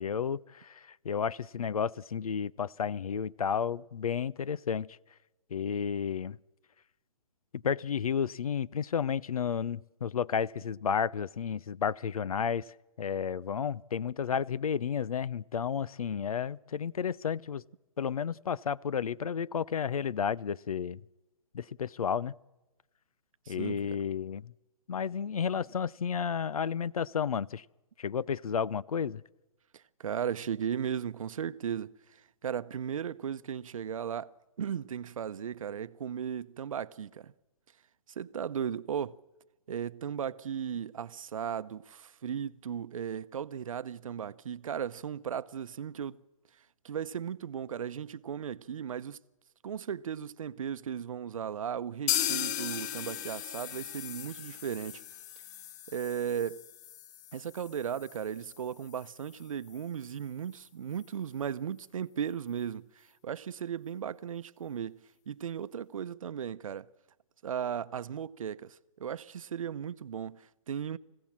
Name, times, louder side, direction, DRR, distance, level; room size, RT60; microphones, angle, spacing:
voice 1, 0.0-5.0 5.5-6.4 7.5-12.6 13.0-17.6 18.0-21.0 21.5-22.3 23.5-24.5 24.9-27.6 28.0-29.2, left 7 dB, 90° left, 0.6 m, -32 dB
voice 2, 23.5-24.0 29.7-34.3 34.6-37.3 38.2-39.2 39.7-46.2 46.8-49.2 49.6-55.0 55.9-56.7 57.3-65.0 65.3-66.9 67.4-71.0, right 8 dB, 70° right, 0.8 m, -36 dB
sound 1, 52.1-59.8 60.1-60.2 60.5-60.6 61.0-61.1, left 11 dB, 30° left, 0.8 m, -37 dB
25.5 x 16.0 x 7.4 m
hypercardioid pair, 150°, 18 cm